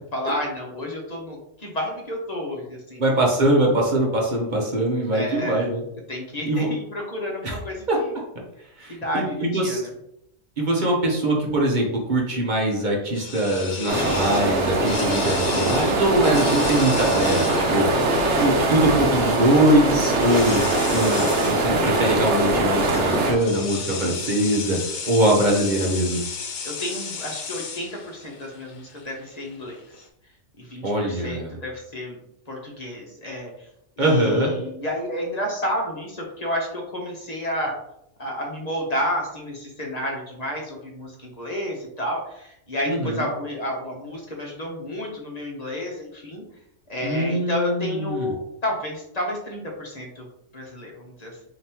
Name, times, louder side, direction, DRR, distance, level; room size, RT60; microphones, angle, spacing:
voice 1, 0.1-3.0 5.1-5.7 6.1-8.1 8.9-9.9 21.1-21.3 26.6-30.0 30.6-32.2 32.5-33.7 34.0-37.7 38.2-46.4 46.9-48.4 48.6-50.3 50.5-51.4, left 1 dB, 35° left, -1 dB, 0.9 m, -31 dB
voice 2, 3.0-5.8 6.4-6.7 7.4-7.5 7.9-8.0 8.8-9.8 10.6-18.1 18.4-26.2 30.8-31.5 34.0-34.5 42.9-43.3 47.0-48.3, right 1 dB, 40° right, -1 dB, 0.9 m, -22 dB
sound 1, 13.1-30.0, left 5 dB, 55° left, 0.5 m, -35 dB
sound 2, 13.9-23.3, right 2 dB, 65° right, 1.0 m, -22 dB
5.2 x 2.9 x 2.9 m, 0.79 s
omnidirectional pair, 1.3 m